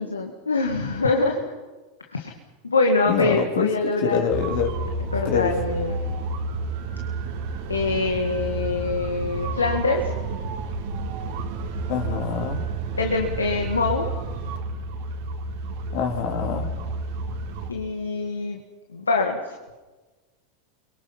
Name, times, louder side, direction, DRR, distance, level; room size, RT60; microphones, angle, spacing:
voice 1, 0.0-1.4 2.1-2.4 2.6-4.3 5.1-6.0 7.7-10.1 13.0-14.1 17.7-18.6 18.9-19.6, left 3 dB, 85° left, 3 dB, 1.9 m, -24 dB
voice 2, 3.1-3.7 4.0-4.7 5.3-5.5 11.9-12.6 15.9-16.7, left 7 dB, 60° left, 2 dB, 3.3 m, -25 dB
sound 1, 4.3-17.7, right 3 dB, 60° right, 2.8 m, -30 dB
30.0 x 23.0 x 5.6 m, 1.2 s
figure-of-eight pair, 85°, 0 cm